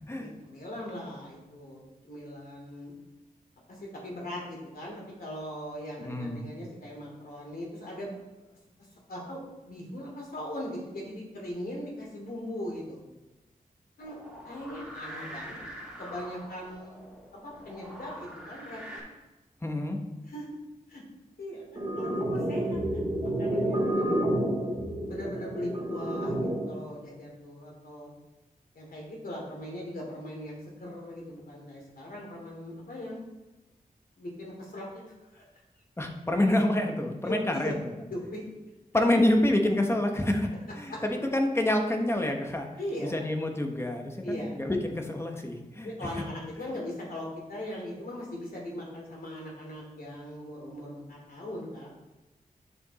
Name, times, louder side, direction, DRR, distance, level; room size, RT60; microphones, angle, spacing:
voice 1, 0.1-2.9 3.7-8.1 8.5-8.6 9.1-9.4 9.6-13.0 14.0-14.2 14.4-15.5 16.0-17.0 17.3-19.0 20.3-20.5 20.9-21.0 21.4-24.2 25.1-28.1 28.7-33.2 34.2-35.1 35.3-35.4 37.2-37.7 38.1-38.4 40.9-41.0 42.8-43.3 44.2-44.6 45.8-51.9, left 1 dB, 80° left, -2 dB, 2.8 m, -39 dB
voice 2, 6.0-6.5 19.6-20.0 36.0-37.7 38.9-40.5 40.8-42.7 43.0-46.2, left 1 dB, 15° left, 3 dB, 1.0 m, -27 dB
sound 1, 14.0-19.0, equal, 5° right, 2.2 m, -44 dB
sound 2, 21.8-26.8, right 1 dB, 35° right, 2.2 m, -29 dB
9.7 x 5.1 x 4.1 m, 1.1 s
wide cardioid pair, 125°, 15 cm